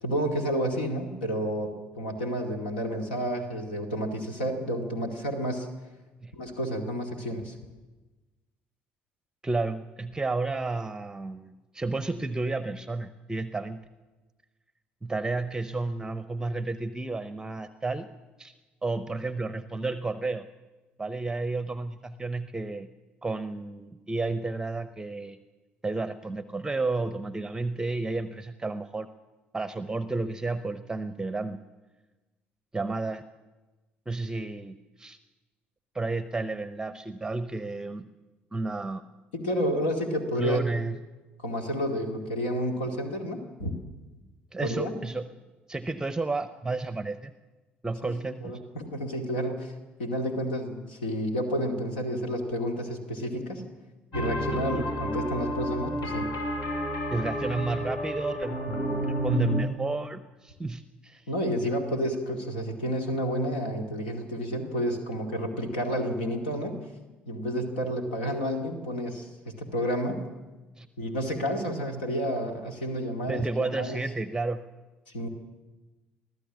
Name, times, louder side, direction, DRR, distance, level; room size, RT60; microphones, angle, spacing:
voice 1, 0.0-5.7 6.3-7.5 39.3-40.6 41.4-43.8 44.6-44.9 48.0-48.1 48.4-49.7 50.0-53.6 54.1-56.3 61.3-66.8 67.3-70.2 71.0-74.0 75.1-75.3, equal, 70° left, 4 dB, 2.3 m, -30 dB
voice 2, 9.4-13.8 15.0-18.1 18.4-18.5 18.8-20.5 21.0-22.9 23.2-25.4 25.8-29.1 29.5-31.6 32.7-33.2 34.1-35.2 35.9-38.0 38.5-39.0 40.4-41.0 44.5-45.3 45.7-47.3 47.8-48.6 54.5-54.8 57.1-61.3 70.8-70.9 73.3-74.6, right 3 dB, 10° right, 13 dB, 0.8 m, -31 dB
sound 1, 54.1-59.6, equal, 55° left, 3.7 m, -30 dB
23.5 x 15.0 x 7.3 m, 1.2 s
figure-of-eight pair, 50°, 6 cm